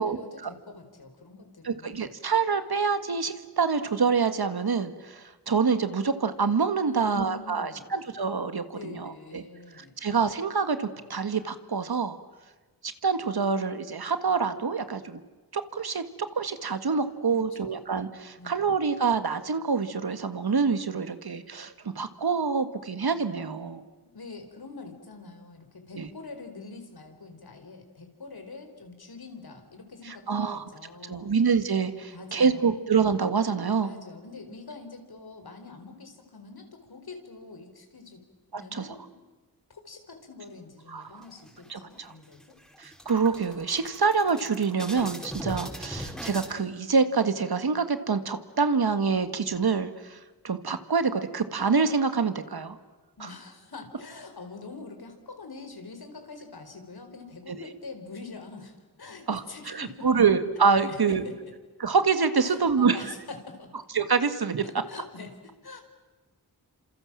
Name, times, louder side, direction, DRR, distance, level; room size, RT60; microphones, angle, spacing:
voice 1, 0.0-2.1 6.9-7.9 8.7-10.0 17.3-17.8 18.4-18.6 24.0-31.3 32.0-32.8 33.8-38.2 38.5-39.2 39.7-42.6 53.2-60.1 60.8-61.3 62.4-63.7 64.6-65.8, left 3 dB, 70° left, 6 dB, 4.7 m, -44 dB
voice 2, 1.6-9.4 9.8-12.2 12.8-15.2 15.5-16.0 16.3-23.8 26.0-26.1 30.1-30.6 31.0-33.9 38.5-38.9 40.9-41.1 41.7-42.1 42.8-50.2 50.4-52.8 53.2-53.3 57.5-57.6 59.3-61.2 61.8-63.0 63.9-64.7, right 5 dB, 70° right, 10 dB, 1.9 m, -26 dB
sound 1, 41.2-41.9 42.3-42.4 42.7-46.5, equal, ahead, 5.3 m, -40 dB
30.0 x 26.5 x 7.5 m, 1.3 s
cardioid pair, 55°, 39 cm